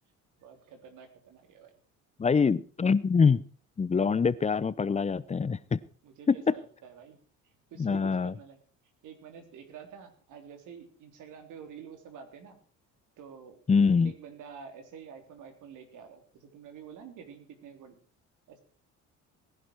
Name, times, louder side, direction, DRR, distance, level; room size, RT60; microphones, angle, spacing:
voice 1, 0.4-1.7 6.0-7.2 7.7-8.6 9.0-12.6 13.2-13.6 14.0-18.0 18.5-18.6, right 7 dB, 70° right, 6 dB, 3.5 m, -48 dB
voice 2, 2.2-3.4 3.8-5.8 6.3-6.4 7.8-8.3 13.7-14.1, left 5 dB, 20° left, 18 dB, 0.7 m, -24 dB
18.5 x 11.0 x 4.6 m, 0.40 s
cardioid pair, 100°, 31 cm